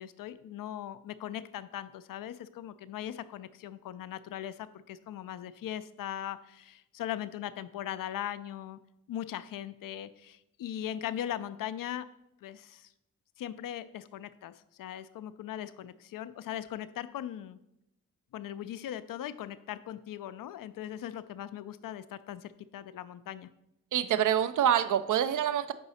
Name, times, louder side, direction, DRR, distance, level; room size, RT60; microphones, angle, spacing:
voice 1, 0.0-8.8 9.1-12.0 12.4-12.9 13.4-17.6 18.3-23.5, left 11 dB, 65° left, 13 dB, 0.5 m, -39 dB
voice 2, 23.9-25.7, right 10 dB, 55° right, 12 dB, 0.5 m, -26 dB
6.2 x 4.7 x 4.1 m, 0.83 s
supercardioid pair, 40°, 36 cm